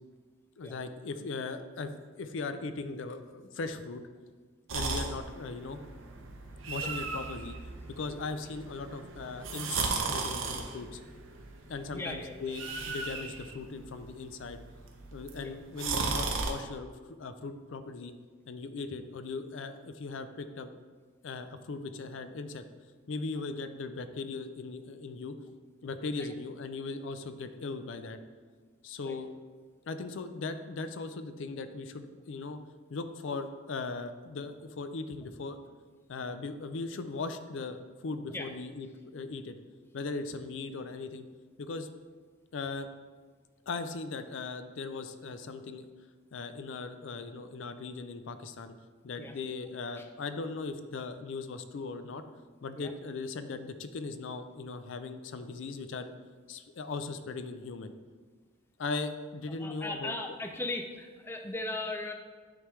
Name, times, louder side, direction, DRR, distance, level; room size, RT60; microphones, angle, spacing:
voice 1, 0.6-4.0 4.7-5.8 6.6-7.6 8.0-11.0 11.7-14.6 15.1-16.9 17.2-18.1 18.5-20.7 21.2-22.6 23.1-25.4 25.8-28.2 28.8-29.3 29.9-32.6 32.9-35.6 36.1-39.6 39.9-41.2 41.6-41.9 42.5-42.9 43.7-45.9 46.3-48.7 49.0-52.2 52.6-56.1 56.5-57.9 58.8-60.2, left 3 dB, 70° left, 10 dB, 0.4 m, -38 dB
sound 1, 4.7-16.5, right 4 dB, 75° right, 0.7 m, -36 dB
voice 2, 11.9-12.4 15.4-15.5 29.0-29.2 38.3-38.5 49.2-49.3 49.9-50.0 52.8-52.9 59.5-62.1, left 2 dB, 10° left, 4 dB, 0.4 m, -38 dB
9.8 x 3.4 x 3.1 m, 1.5 s
head